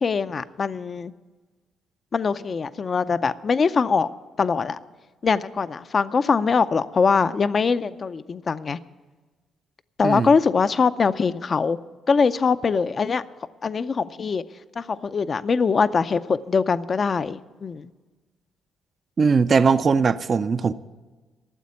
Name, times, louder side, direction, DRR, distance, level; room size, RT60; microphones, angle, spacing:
voice 1, 0.0-1.1 2.1-4.1 4.4-4.8 5.2-8.8 10.0-11.8 12.1-13.2 13.6-14.4 14.8-17.9, left 5 dB, 40° left, 0.5 m, -22 dB
voice 2, 19.2-20.7, right 5 dB, 40° right, 0.5 m, -20 dB
13.5 x 7.4 x 9.6 m
cardioid pair, 90°, 0 cm